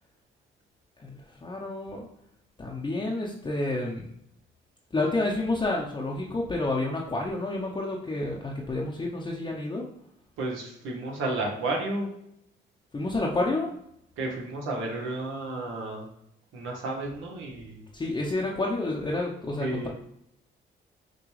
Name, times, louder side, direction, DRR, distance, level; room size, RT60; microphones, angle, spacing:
voice 1, 1.0-2.1 2.6-4.1 4.9-9.9 12.9-13.7 17.9-19.9, left 2 dB, 20° left, -2 dB, 0.7 m, -29 dB
voice 2, 10.4-12.1 14.2-16.1 16.5-17.8 19.6-19.9, right 2 dB, 80° right, 0 dB, 1.2 m, -32 dB
6.0 x 2.3 x 3.2 m, 0.74 s
cardioid pair, 90°, 20 cm